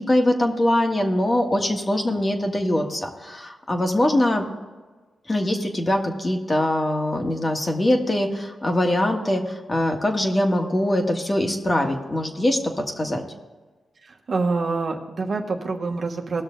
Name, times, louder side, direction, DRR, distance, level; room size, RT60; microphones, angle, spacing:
voice 1, 0.0-4.4 5.3-12.6 13.0-13.2, left 1 dB, 30° left, 2 dB, 1.7 m, -22 dB
voice 2, 14.3-16.4, right 3 dB, 55° right, 3 dB, 1.3 m, -26 dB
18.0 x 6.3 x 3.9 m, 1.3 s
cardioid pair, 70°, 0 cm